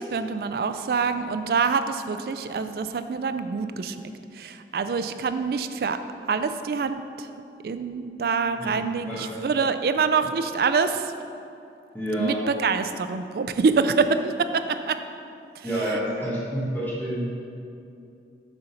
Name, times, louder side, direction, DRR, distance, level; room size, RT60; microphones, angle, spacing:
voice 1, 0.0-6.0 6.3-7.3 7.6-11.1 12.2-15.0 15.6-16.0, right 5 dB, 55° right, 10 dB, 0.3 m, -26 dB
voice 2, 9.1-9.4 11.9-12.4 15.6-17.3, equal, 10° left, -8 dB, 1.5 m, -28 dB
6.9 x 3.9 x 5.7 m, 2.6 s
head